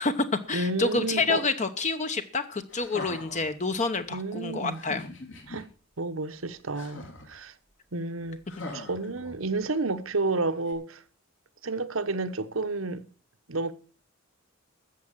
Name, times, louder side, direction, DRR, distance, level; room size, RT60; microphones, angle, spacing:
voice 1, 0.0-5.1, left 3 dB, 35° left, 0.9 m, -28 dB
voice 2, 0.5-1.5 4.1-4.8 5.5-5.7 6.0-7.5 7.9-8.4 8.7-11.0 11.6-13.0 13.5-13.7, right 3 dB, 90° right, 1.2 m, -30 dB
sound 1, 2.7-3.5 4.7-5.6 6.7-7.4 8.5-9.6 10.7-10.8, left 2 dB, 70° left, 3.4 m, -41 dB
13.5 x 7.7 x 7.4 m
head